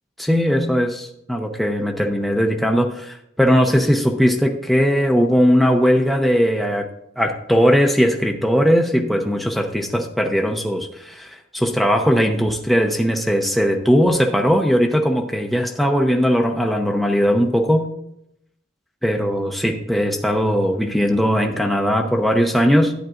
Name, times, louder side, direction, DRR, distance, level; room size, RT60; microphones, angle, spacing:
voice 1, 0.2-6.9 7.2-17.9 19.0-22.9, equal, ahead, 1 dB, 0.7 m, -19 dB
12.0 x 9.1 x 2.5 m, 0.79 s
head